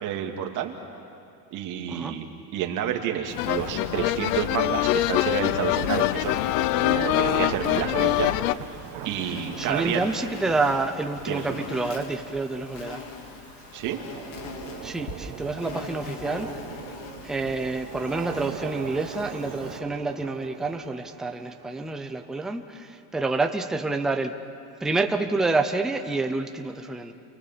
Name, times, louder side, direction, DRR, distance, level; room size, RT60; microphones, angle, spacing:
voice 1, 0.0-0.7 1.5-2.3 2.5-6.4 6.8-8.3 9.0-10.0 11.3-11.6 13.7-14.0, right 10 dB, 40° right, 3 dB, 2.5 m, -29 dB
voice 2, 1.9-2.2 9.6-13.0 14.8-16.5 17.2-24.3 24.8-27.1, right 3 dB, ahead, 5 dB, 0.5 m, -28 dB
Insect, 3.3-19.8, left 4 dB, 65° left, 3.1 m, -42 dB
sound 1, 3.4-8.5, left 17 dB, 85° left, 0.7 m, -24 dB
sound 2, 3.6-22.6, right 13 dB, 60° right, 1.3 m, -41 dB
30.0 x 24.0 x 7.4 m, 2.7 s
cardioid pair, 165°, 46 cm